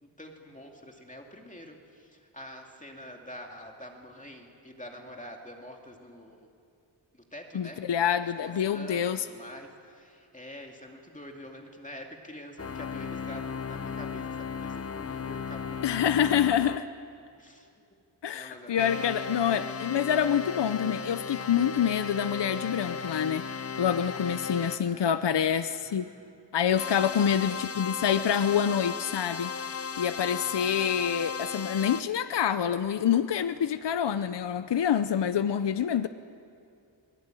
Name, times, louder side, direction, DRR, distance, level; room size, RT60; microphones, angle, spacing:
voice 1, 0.0-6.5 7.1-8.1 8.4-16.2 17.4-17.8 18.3-19.7 24.7-26.3 27.1-28.0 30.3-30.8, left 1 dB, 15° left, 2 dB, 2.4 m, -47 dB
voice 2, 7.5-9.3 15.8-16.8 18.2-23.4 23.8-26.0 26.5-29.5 30.0-36.1, left 8 dB, 65° left, 11 dB, 0.8 m, -26 dB
sound 1, 12.6-16.8 18.7-24.8 26.7-32.0, left 6 dB, 30° left, 0.7 m, -36 dB
24.0 x 20.5 x 9.1 m, 2.4 s
wide cardioid pair, 135°, 45 cm